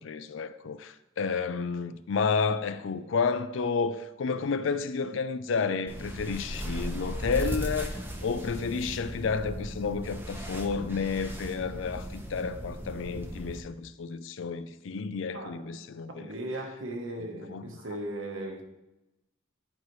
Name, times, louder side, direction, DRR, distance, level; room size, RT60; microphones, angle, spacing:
voice 1, 0.0-16.3 17.5-17.6, left 5 dB, 75° left, 0.4 m, -31 dB
sound 1, 5.9-13.6, equal, 10° right, 0.8 m, -37 dB
voice 2, 15.3-15.7 16.1-18.6, right 1 dB, 90° right, 1.2 m, -37 dB
10.5 x 4.9 x 3.1 m
head